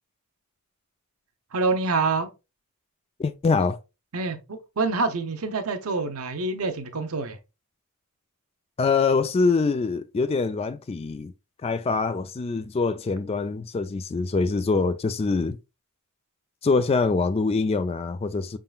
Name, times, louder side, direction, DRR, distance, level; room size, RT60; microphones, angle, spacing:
voice 1, 1.5-2.3 4.1-7.4, right 3 dB, 80° right, 0.8 m, -26 dB
voice 2, 3.2-3.8 8.8-11.3 11.6-15.6 16.6-18.6, left 4 dB, 25° left, 0.3 m, -24 dB
5.5 x 3.7 x 2.3 m
head